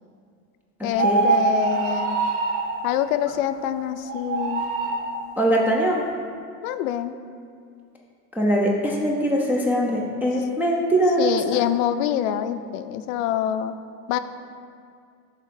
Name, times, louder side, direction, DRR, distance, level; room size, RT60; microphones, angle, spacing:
voice 1, 0.8-2.2 2.8-4.6 6.6-7.1 10.2-10.3 11.2-13.8 14.1-14.2, left 11 dB, 70° left, 11 dB, 0.5 m, -25 dB
sound 1, 0.9-2.7 4.0-5.1, right 4 dB, 80° right, 1.5 m, -23 dB
voice 2, 5.4-6.1 8.4-11.6, equal, 5° right, -4 dB, 0.5 m, -22 dB
6.5 x 3.7 x 5.3 m, 2.3 s
supercardioid pair, 125°, 42 cm